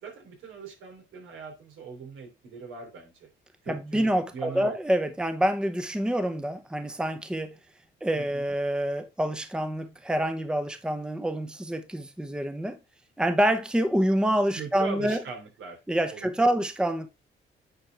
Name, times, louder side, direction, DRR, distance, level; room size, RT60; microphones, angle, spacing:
voice 1, 0.0-3.3 3.6-4.8 8.1-8.5 14.6-15.8 16.1-16.3, right 5 dB, 80° right, 3.1 m, -40 dB
voice 2, 3.7-7.5 8.0-12.8 13.2-15.2 15.9-17.1, right 1 dB, 5° right, 0.8 m, -27 dB
9.0 x 4.3 x 3.4 m
cardioid pair, 90°, 20 cm